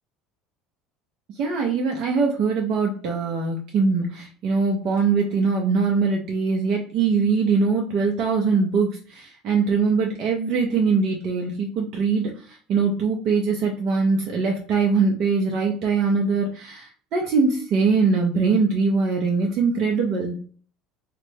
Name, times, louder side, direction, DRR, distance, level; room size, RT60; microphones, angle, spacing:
voice 1, 1.3-20.4, right 4 dB, 55° right, 0 dB, 0.6 m, -22 dB
3.3 x 2.0 x 3.2 m, 0.42 s
hypercardioid pair, 85°, 0 cm